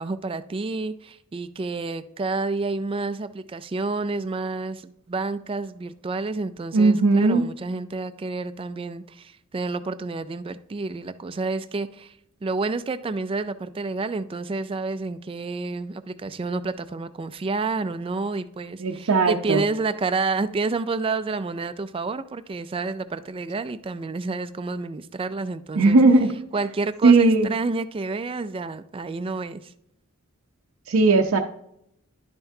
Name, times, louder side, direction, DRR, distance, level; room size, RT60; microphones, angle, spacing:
voice 1, 0.0-12.1 12.4-26.0 26.5-29.7, right 3 dB, 25° right, 0.3 m, -29 dB
voice 2, 6.7-7.4 18.8-19.6 25.8-26.3 27.0-27.5 30.9-31.4, right 3 dB, 75° right, 0.6 m, -17 dB
11.0 x 5.7 x 2.7 m
head